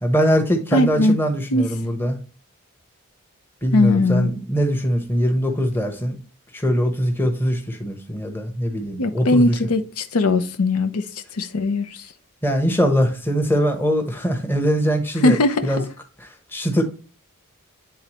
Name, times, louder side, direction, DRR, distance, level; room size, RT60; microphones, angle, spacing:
voice 1, 0.0-2.2 3.6-6.1 6.5-9.5 12.4-15.4 15.6-15.8 16.2-16.8, equal, 10° left, 1.0 m, -22 dB
voice 2, 0.7-1.2 1.5-1.7 3.7-4.3 9.0-11.0 11.3-12.0 15.2-15.9, left 2 dB, 85° left, 0.7 m, -19 dB
9.4 x 3.9 x 3.0 m
head